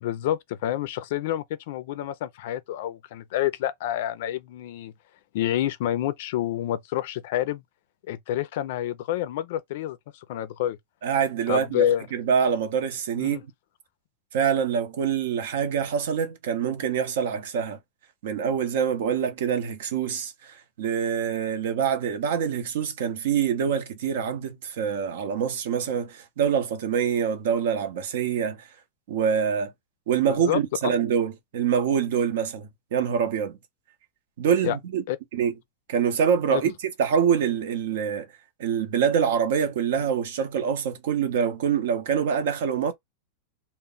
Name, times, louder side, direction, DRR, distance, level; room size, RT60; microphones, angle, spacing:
voice 1, 0.0-4.9 5.3-7.6 8.1-10.8 11.5-12.1 13.2-13.4 30.3-30.6 34.6-34.8 35.1-35.2 36.5-36.6, left 12 dB, 60° left, 0.4 m, -28 dB
voice 2, 11.0-11.8 12.1-13.5 14.3-17.8 18.2-28.6 29.1-29.7 30.1-33.6 34.4-35.0 35.3-35.5 35.9-36.7 37.0-38.3 38.6-42.9, right 7 dB, 70° right, 0.6 m, -25 dB
2.2 x 2.0 x 3.7 m
supercardioid pair, 145°, 0 cm